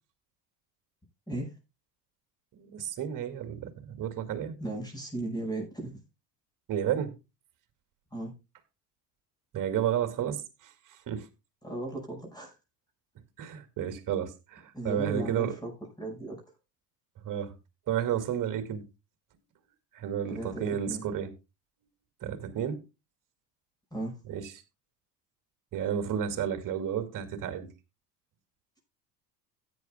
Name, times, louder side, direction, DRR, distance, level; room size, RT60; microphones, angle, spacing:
voice 1, 2.5-4.6 6.7-7.1 9.5-11.3 13.4-15.5 17.2-17.5 17.9-18.8 19.9-21.3 22.2-22.8 24.3-24.5 25.7-27.7, right 9 dB, 40° right, 2.3 m, -32 dB
voice 2, 4.6-6.0 8.1-8.3 11.6-12.6 14.7-15.7 16.0-16.4 20.3-21.0 23.9-24.2, right 2 dB, 10° left, 5.4 m, -36 dB
17.0 x 9.4 x 2.3 m
hypercardioid pair, 75°, 48 cm